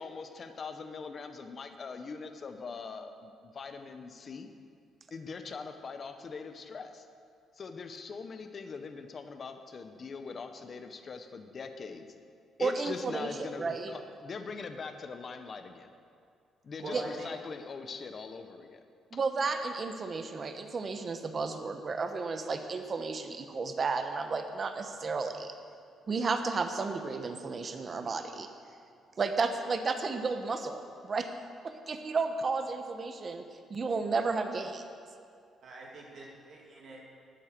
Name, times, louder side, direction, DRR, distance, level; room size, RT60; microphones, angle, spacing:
voice 1, 0.0-4.5 5.1-7.1 7.6-12.1 12.6-15.9 16.6-18.8, left 4 dB, 45° left, 7 dB, 1.1 m, -42 dB
voice 2, 12.6-13.9 16.9-17.0 19.1-25.5 26.1-28.5 29.2-31.3 31.6-33.4 33.7-34.9, right 4 dB, 40° right, 7 dB, 1.1 m, -33 dB
voice 3, 16.8-17.3 35.6-37.0, right 2 dB, 60° right, -3 dB, 2.7 m, -44 dB
12.0 x 9.2 x 6.8 m, 2.4 s
cardioid pair, 90°, 0 cm